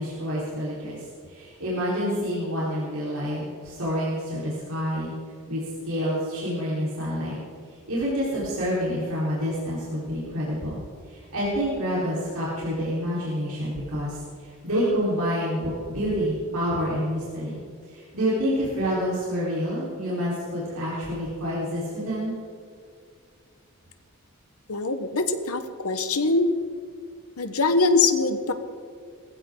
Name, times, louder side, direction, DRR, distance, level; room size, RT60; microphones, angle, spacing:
voice 1, 0.0-5.1 5.5-7.4 7.9-17.6 17.9-22.3, equal, 75° right, -8 dB, 4.3 m, -28 dB
voice 2, 24.7-26.5 27.4-28.5, left 3 dB, 85° left, 9 dB, 1.2 m, -23 dB
20.5 x 15.5 x 3.9 m, 2.2 s
head